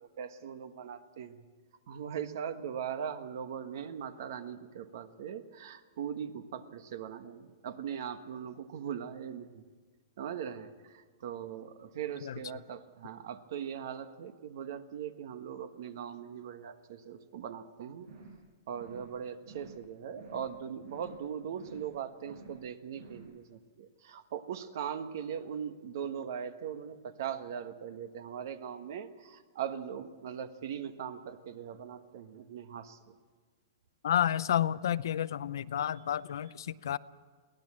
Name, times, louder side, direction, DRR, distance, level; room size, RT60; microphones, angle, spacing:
voice 1, 0.0-1.4 1.9-9.6 10.2-18.1 18.7-33.1, right 8 dB, 55° right, 10 dB, 1.4 m, -40 dB
sound 1, 18.0-18.4 18.7-19.1 19.4-19.8 20.1-20.5 20.8-21.2 21.5-21.9 22.2-22.6 22.9-23.3, right 3 dB, 75° right, 7.3 m, -52 dB
voice 2, 34.0-37.0, left 10 dB, 75° left, 16 dB, 0.7 m, -30 dB
23.0 x 17.5 x 7.5 m, 1.5 s
hypercardioid pair, 165°, 2 cm